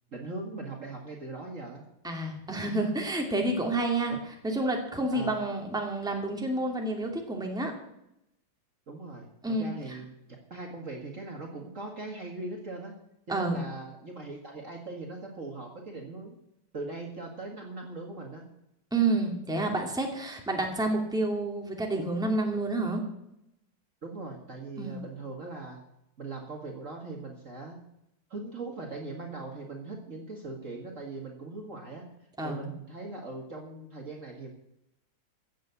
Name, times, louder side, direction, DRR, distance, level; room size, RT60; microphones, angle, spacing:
voice 1, 0.1-1.8 5.1-5.5 8.9-10.1 10.5-12.9 13.3-16.4 16.7-18.4 24.0-25.8 26.2-27.8 28.3-32.1 32.4-34.5, right 3 dB, 40° right, 1 dB, 2.1 m, -40 dB
voice 2, 2.0-4.1 4.4-7.7 9.4-10.0 13.3-13.6 18.9-23.0 24.8-25.0 32.4-32.7, right 2 dB, ahead, 1 dB, 2.3 m, -29 dB
15.5 x 7.6 x 8.2 m, 0.82 s
omnidirectional pair, 2.2 m